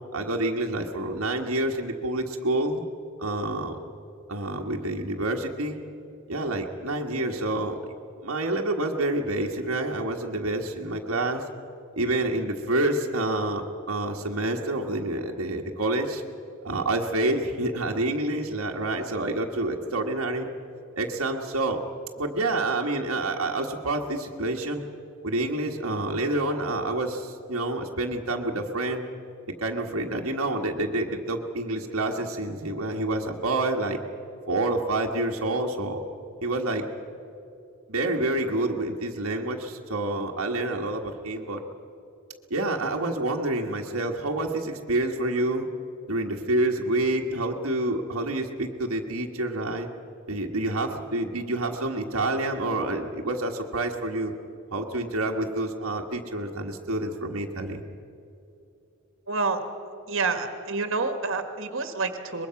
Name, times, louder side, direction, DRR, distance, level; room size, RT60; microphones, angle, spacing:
voice 1, 0.1-2.8 3.2-3.8 4.3-5.8 6.3-7.8 8.2-11.4 12.0-16.2 16.6-20.5 21.0-21.8 22.2-24.9 25.2-29.1 29.6-34.0 34.5-36.0 36.4-36.9 37.9-41.6 42.5-45.7 46.1-49.9 50.3-54.3 54.7-57.8, right 2 dB, 90° right, 1 dB, 1.6 m, -28 dB
voice 2, 59.3-59.6 60.1-62.5, right 4 dB, 65° right, 7 dB, 1.7 m, -28 dB
23.5 x 21.5 x 5.9 m, 2.7 s
head